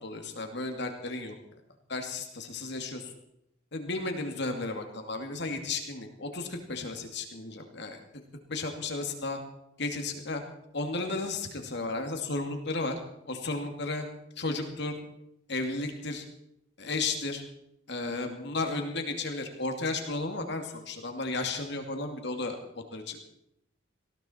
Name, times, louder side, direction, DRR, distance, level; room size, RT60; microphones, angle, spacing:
voice 1, 0.0-1.4 1.9-3.1 3.7-8.0 8.5-9.4 9.8-10.4 10.7-13.0 13.2-14.1 14.4-14.9 15.5-16.2 16.8-17.4 17.9-23.2, left 3 dB, 60° left, 4 dB, 2.5 m, -33 dB
19.5 x 16.0 x 4.5 m, 0.78 s
head